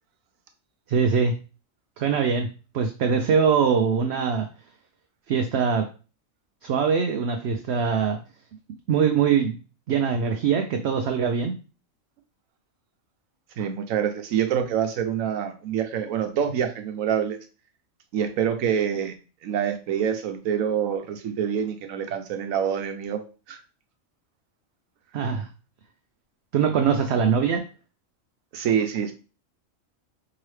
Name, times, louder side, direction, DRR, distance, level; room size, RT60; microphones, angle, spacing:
voice 1, 0.9-1.3 2.0-2.5 2.7-4.5 5.3-5.9 6.6-8.2 8.9-9.6 9.9-11.5 25.1-25.5 26.5-27.6, right 6 dB, 65° right, 5 dB, 0.7 m, -22 dB
voice 2, 13.6-17.4 18.1-19.2 19.4-23.6 28.5-29.1, right 8 dB, 85° right, 8 dB, 1.1 m, -26 dB
4.7 x 2.9 x 3.2 m, 0.35 s
omnidirectional pair, 1.4 m